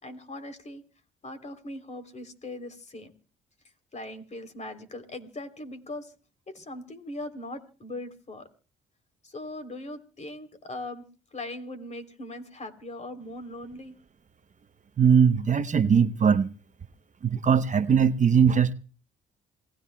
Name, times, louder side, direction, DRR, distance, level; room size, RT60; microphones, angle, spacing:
voice 1, 0.0-0.8 1.2-3.1 3.9-6.1 6.5-8.5 9.2-11.0 11.3-13.9, left 1 dB, 35° left, 8 dB, 3.4 m, -40 dB
voice 2, 15.0-16.5 17.2-18.7, right 7 dB, 40° right, 10 dB, 0.9 m, -20 dB
28.0 x 18.5 x 2.3 m, 0.37 s
cardioid pair, 90°, 20 cm